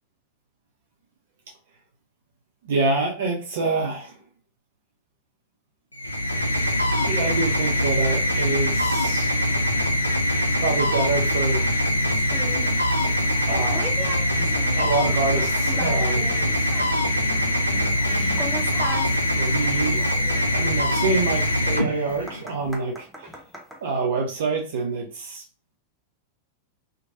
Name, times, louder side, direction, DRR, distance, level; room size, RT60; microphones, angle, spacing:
voice 1, 2.6-4.1 7.0-9.3 10.6-11.7 13.5-14.1 14.8-16.3 18.0-18.5 19.3-20.0 20.5-23.4 23.8-25.4, right 3 dB, 60° right, 0 dB, 0.6 m, -26 dB
sound 1, 5.9-22.5, left 1 dB, 85° left, 0.4 m, -23 dB
sound 2, 12.1-23.8, equal, ahead, 0.6 m, -39 dB
3.0 x 2.1 x 2.6 m, 0.33 s
figure-of-eight pair, 90°, 0 cm